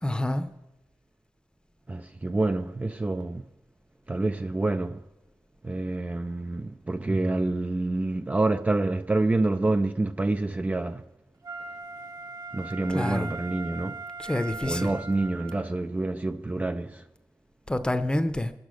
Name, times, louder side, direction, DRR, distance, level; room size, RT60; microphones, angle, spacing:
voice 1, 0.0-0.4 12.9-13.3 14.2-14.9 17.7-18.5, left 1 dB, 10° left, 0.8 m, -27 dB
voice 2, 1.9-3.4 4.1-5.0 5.6-11.0 12.5-14.0 14.6-17.1, right 2 dB, 20° right, 0.4 m, -27 dB
Wind instrument woodwind instrument, 11.4-15.7 16.2-16.3, right 3 dB, 65° right, 2.1 m, -39 dB
23.0 x 8.4 x 6.3 m
wide cardioid pair, 145°, 8 cm